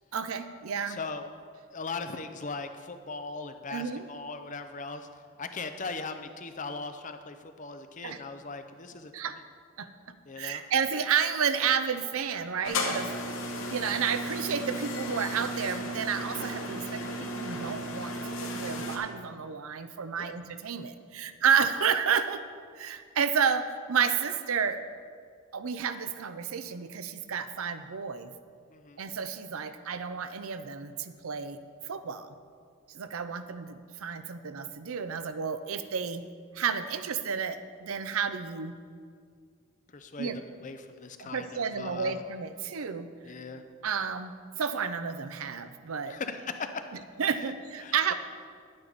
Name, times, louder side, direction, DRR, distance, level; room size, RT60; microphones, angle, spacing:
voice 1, 0.1-1.0 3.7-4.1 8.0-8.2 9.1-9.4 9.8-9.9 10.4-13.1 13.7-18.1 18.4-22.4 22.7-24.8 25.5-28.3 29.0-31.6 31.9-32.3 32.9-36.3 36.5-38.8 40.2-40.4 41.2-43.1 43.8-46.2 47.2-48.1, right 6 dB, 70° right, 11 dB, 0.5 m, -31 dB
voice 2, 0.9-1.3 1.7-5.1 5.4-9.1 10.3-10.6 20.2-20.3 28.7-29.0 39.9-42.2 43.2-43.6 46.1-46.6 47.8-48.1, left 4 dB, 35° left, 8 dB, 0.5 m, -39 dB
sound 1, 12.6-19.0, equal, 60° left, 1.1 m, -34 dB
11.0 x 8.8 x 4.0 m, 2.1 s
head